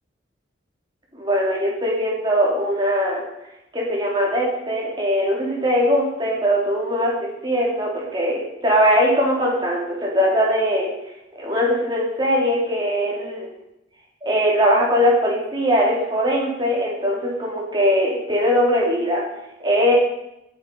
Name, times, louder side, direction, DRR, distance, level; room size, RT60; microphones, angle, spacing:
voice 1, 1.1-3.2 3.7-10.9 11.4-13.5 14.2-19.2 19.6-19.9, equal, 25° right, -3 dB, 4.1 m, -20 dB
19.0 x 8.5 x 5.8 m, 0.86 s
head